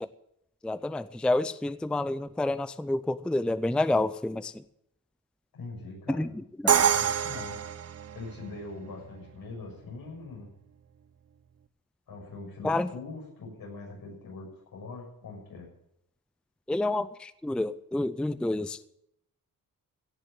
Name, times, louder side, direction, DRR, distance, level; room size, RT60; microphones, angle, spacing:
voice 1, 0.6-4.5 6.1-6.3 12.6-12.9 16.7-18.9, left 2 dB, 5° left, 15 dB, 0.4 m, -28 dB
voice 2, 5.5-6.3 6.7-7.6 8.1-10.5 12.1-15.7, left 3 dB, 80° left, -2 dB, 6.6 m, -42 dB
Crash cymbal, 6.7-8.6, right 8 dB, 45° right, 0.7 m, -26 dB
17.0 x 6.9 x 9.1 m, 0.78 s
wide cardioid pair, 130°, 35 cm